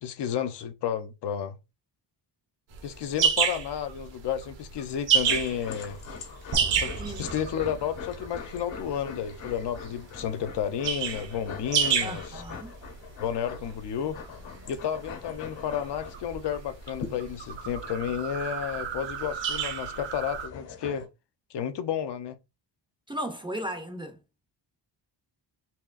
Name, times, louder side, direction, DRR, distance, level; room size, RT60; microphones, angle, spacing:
voice 1, 0.0-1.6 2.8-6.0 6.8-12.4 13.2-14.2 14.7-21.1 21.5-22.4, left 8 dB, 65° left, 0.6 m, -32 dB
sound 1, 2.7-20.5, right 7 dB, 75° right, 1.0 m, -31 dB
sound 2, 5.3-21.1, left 6 dB, 85° left, 1.8 m, -44 dB
sound 3, 6.5-10.6, right 2 dB, 55° right, 0.6 m, -40 dB
voice 2, 7.0-7.4 12.0-12.7 23.1-24.2, right 1 dB, 10° right, 0.4 m, -36 dB
4.4 x 3.1 x 2.4 m
wide cardioid pair, 170°, 44 cm